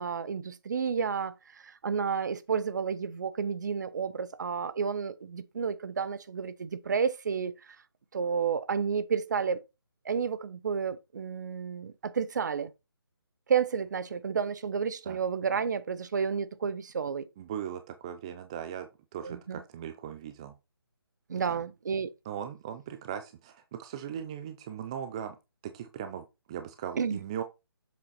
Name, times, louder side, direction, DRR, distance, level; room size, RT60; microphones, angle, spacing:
voice 1, 0.0-7.5 8.1-9.6 10.0-12.7 13.5-17.3 19.2-19.6 21.3-22.1 27.0-27.2, right 6 dB, 45° right, 0.7 m, -31 dB
voice 2, 17.4-20.5 21.5-21.6 22.3-25.4 25.6-27.4, right 9 dB, 15° right, 0.3 m, -39 dB
7.3 x 4.3 x 4.1 m
figure-of-eight pair, 155°, 13 cm